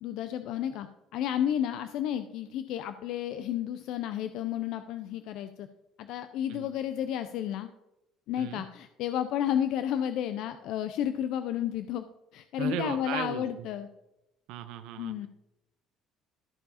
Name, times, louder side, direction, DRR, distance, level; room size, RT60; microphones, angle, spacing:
voice 1, 0.0-5.7 6.0-7.7 8.3-12.1 12.3-13.9 15.0-15.3, left 10 dB, 70° left, 10 dB, 0.5 m, -32 dB
voice 2, 12.6-13.7 14.5-15.1, right 11 dB, 80° right, 9 dB, 0.6 m, -36 dB
13.5 x 4.7 x 4.2 m, 0.91 s
cardioid pair, 140°, 0 cm